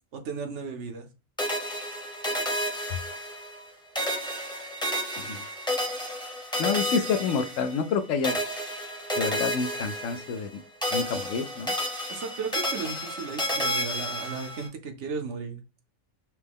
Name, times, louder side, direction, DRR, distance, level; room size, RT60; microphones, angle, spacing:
voice 1, 0.1-1.1 12.1-15.6, right 5 dB, 65° right, 1.0 m, -35 dB
sound 1, 1.4-3.7 3.9-7.9 8.2-10.5 10.8-14.7, equal, 5° left, 0.7 m, -31 dB
voice 2, 6.6-8.4 9.2-10.6 10.9-11.7, left 5 dB, 70° left, 0.9 m, -28 dB
5.9 x 2.1 x 3.4 m
omnidirectional pair, 1.4 m